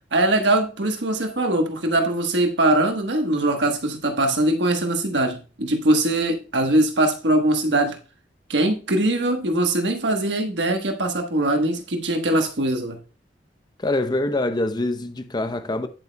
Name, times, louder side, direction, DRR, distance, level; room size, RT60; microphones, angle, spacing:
voice 1, 0.1-8.0 8.5-13.0, right 1 dB, 70° right, 1.2 m, -21 dB
voice 2, 13.8-15.9, left 2 dB, 25° left, 0.7 m, -24 dB
9.7 x 7.9 x 2.2 m
head